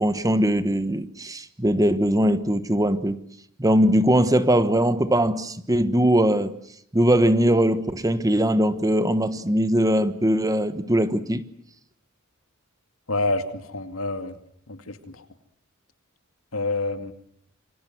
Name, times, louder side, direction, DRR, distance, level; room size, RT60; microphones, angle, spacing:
voice 1, 0.0-3.2 3.6-6.6 6.9-11.4, right 1 dB, 15° right, 1.2 m, -21 dB
voice 2, 13.1-14.4 14.7-15.2 16.5-17.1, left 2 dB, 85° left, 2.5 m, -28 dB
27.5 x 24.5 x 6.1 m
head